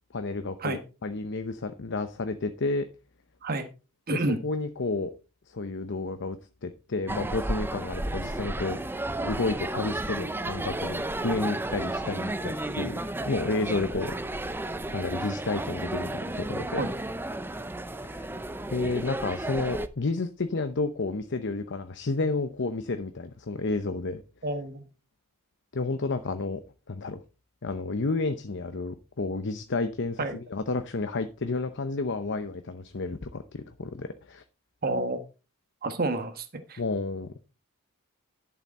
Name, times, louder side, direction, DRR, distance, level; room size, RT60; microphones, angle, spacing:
voice 1, 0.1-2.9 4.1-5.1 5.5-6.4 6.6-8.8 9.2-13.0 13.2-14.1 14.9-16.8 18.0-18.3 18.7-24.2 25.7-26.6 26.9-27.2 27.6-34.4 36.8-37.5, left 3 dB, 55° left, 0.8 m, -31 dB
voice 2, 4.1-4.4 16.8-16.9 24.4-24.8 30.2-30.4 34.8-35.2 35.8-36.8, right 2 dB, 45° right, 1.4 m, -29 dB
sound 1, 7.1-19.9, right 1 dB, 10° right, 0.6 m, -33 dB
11.0 x 7.2 x 4.2 m
head